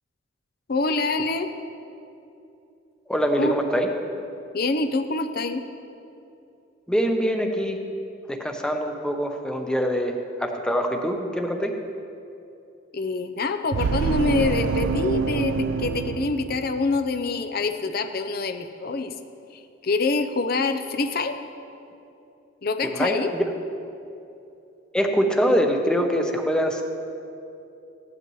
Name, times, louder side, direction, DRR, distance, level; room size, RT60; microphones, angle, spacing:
voice 1, 0.7-1.5 3.4-3.5 4.5-5.6 12.9-19.1 19.8-21.3 22.6-23.3, left 3 dB, 50° left, 8 dB, 0.6 m, -25 dB
voice 2, 3.1-3.9 6.9-7.8 8.3-11.8 22.8-23.4 24.9-26.8, equal, 5° left, 3 dB, 0.8 m, -24 dB
sound 1, 13.7-17.2, right 5 dB, 90° right, 0.4 m, -26 dB
16.0 x 11.0 x 3.1 m, 2.7 s
head